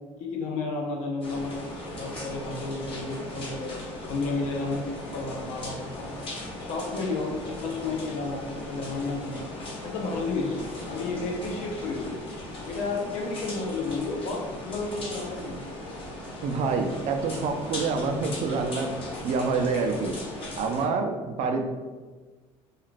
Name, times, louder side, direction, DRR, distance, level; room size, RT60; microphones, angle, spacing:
voice 1, 0.2-3.7 4.1-6.1 6.6-9.5 9.8-12.1 12.7-15.7, left 3 dB, 70° left, 0 dB, 0.6 m, -32 dB
sound 1, 1.2-20.8, left 1 dB, 45° left, 1.0 m, -38 dB
voice 2, 16.4-18.9 19.2-20.1 20.6-21.7, right 4 dB, 60° right, 5 dB, 0.4 m, -27 dB
2.4 x 2.4 x 3.2 m, 1.3 s
cardioid pair, 105°, 13 cm